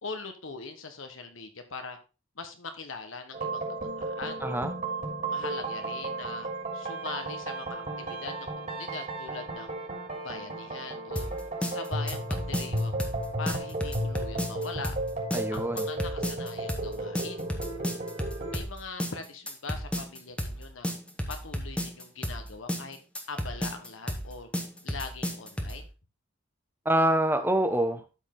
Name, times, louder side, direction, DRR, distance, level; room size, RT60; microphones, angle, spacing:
voice 1, 0.0-2.0 2.4-3.6 4.0-4.5 5.3-9.7 10.2-11.3 11.6-13.0 13.4-15.0 15.5-17.5 18.5-20.9 21.3-23.0 23.3-24.5 24.8-25.9, left 4 dB, 80° left, 7 dB, 1.2 m, -41 dB
sound 1, 3.3-18.6, right 2 dB, 40° right, 3.2 m, -34 dB
voice 2, 4.4-4.7 15.3-15.9 26.8-28.0, right 1 dB, 10° right, 7 dB, 1.0 m, -25 dB
sound 2, 11.2-25.9, equal, 5° left, 1.3 m, -33 dB
12.5 x 4.7 x 3.7 m, 0.31 s
head